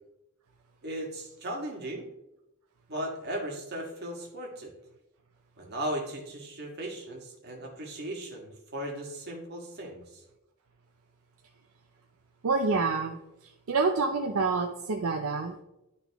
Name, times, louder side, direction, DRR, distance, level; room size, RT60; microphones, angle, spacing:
voice 1, 0.8-2.1 2.9-4.7 5.6-10.2, right 1 dB, 50° right, -1 dB, 1.7 m, -37 dB
voice 2, 12.4-15.6, right 4 dB, 70° right, 4 dB, 0.5 m, -28 dB
11.5 x 3.9 x 3.5 m, 0.90 s
head